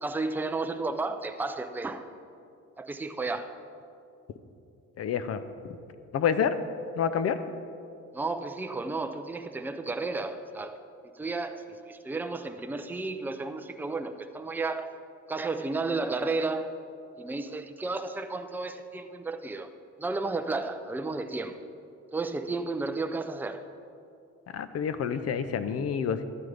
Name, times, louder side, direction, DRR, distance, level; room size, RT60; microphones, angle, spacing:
voice 1, 0.0-2.0 2.8-3.5 8.1-10.8 11.2-14.9 15.3-16.7 17.2-19.7 20.0-21.6 22.1-23.7, right 3 dB, 5° right, 8 dB, 0.5 m, -32 dB
voice 2, 5.0-5.4 6.1-6.6 7.0-7.4 24.5-26.2, left 7 dB, 55° left, 11 dB, 0.6 m, -28 dB
12.5 x 9.2 x 3.4 m, 2.6 s
cardioid pair, 90°, 30 cm